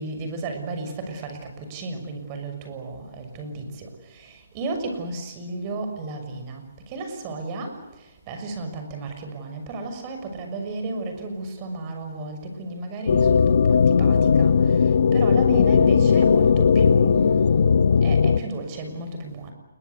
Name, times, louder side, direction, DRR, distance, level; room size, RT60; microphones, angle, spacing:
voice 1, 0.0-7.8 8.3-14.5 15.1-19.5, right 2 dB, 30° right, 6 dB, 6.2 m, -33 dB
sound 1, 13.1-18.4, left 6 dB, 65° left, 1.0 m, -17 dB
29.0 x 22.0 x 8.3 m, 1.0 s
hypercardioid pair, 155°, 0 cm